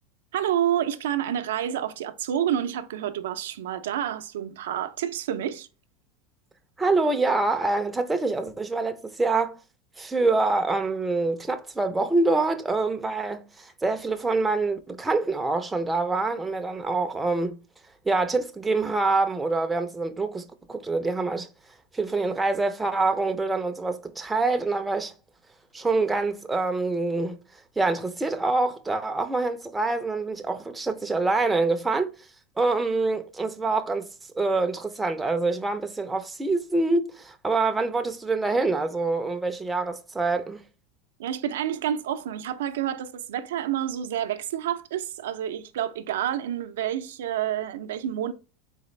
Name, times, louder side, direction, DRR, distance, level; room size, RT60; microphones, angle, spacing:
voice 1, 0.3-5.7 41.2-48.3, right 10 dB, 90° right, 0.4 m, -29 dB
voice 2, 6.8-9.6 10.0-17.6 18.0-21.5 21.9-25.1 25.7-32.1 32.6-40.6, right 3 dB, 10° right, 0.4 m, -26 dB
4.1 x 3.3 x 3.1 m
supercardioid pair, 145°, 0 cm